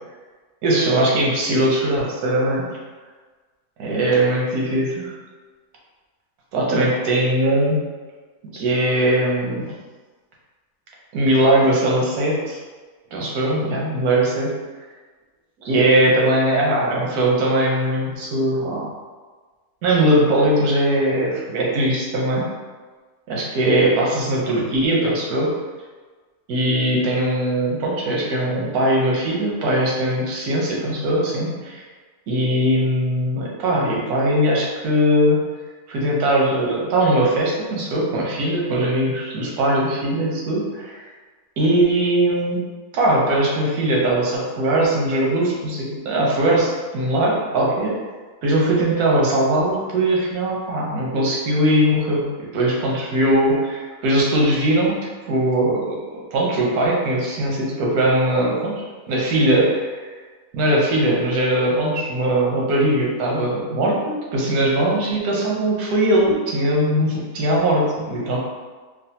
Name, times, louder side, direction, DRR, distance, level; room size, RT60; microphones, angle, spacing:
voice 1, 0.6-2.6 3.8-5.1 6.5-7.8 8.5-9.8 11.1-12.6 13.1-14.5 15.6-18.9 19.8-22.4 23.3-25.5 26.5-31.8 32.3-35.4 35.9-41.0 41.6-42.6 42.9-47.9 48.4-52.3 52.5-55.0 55.2-60.0 60.5-68.4, right 1 dB, 90° right, -3 dB, 1.2 m, -20 dB
3.2 x 2.3 x 2.7 m, 1.4 s
omnidirectional pair, 1.6 m